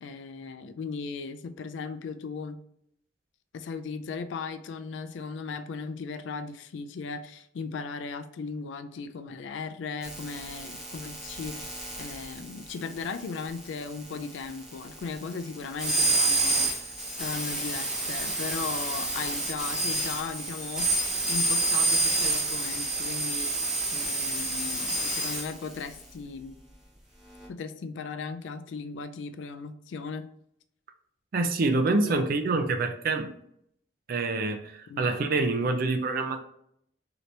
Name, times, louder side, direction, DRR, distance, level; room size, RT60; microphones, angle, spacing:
voice 1, 0.0-2.6 3.5-21.0 21.3-23.6 23.9-26.5 27.5-30.3 32.0-32.2 34.9-35.1, left 5 dB, 80° left, 0.3 m, -37 dB
sound 1, 10.0-25.9 27.4-27.5, right 2 dB, 5° right, 0.8 m, -29 dB
voice 2, 31.3-33.3 34.1-36.4, right 3 dB, 55° right, 0.4 m, -26 dB
3.2 x 2.9 x 2.6 m
head